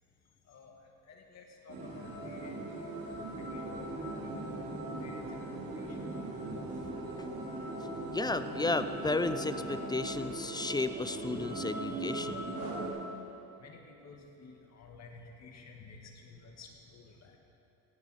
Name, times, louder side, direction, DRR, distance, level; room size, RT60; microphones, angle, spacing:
voice 1, 1.1-2.5 3.5-4.3 5.0-5.2 5.8-6.0 13.6-17.1, left 4 dB, 50° left, 1 dB, 1.9 m, -53 dB
sound 1, 1.7-12.9, right 2 dB, 70° right, 2.7 m, -39 dB
Brass instrument, 3.4-10.2, equal, 25° right, 1.3 m, -47 dB
voice 2, 6.5-7.3 8.1-12.5, left 3 dB, 15° left, 11 dB, 0.3 m, -34 dB
15.5 x 8.8 x 4.3 m, 2.8 s
supercardioid pair, 85°, 35 cm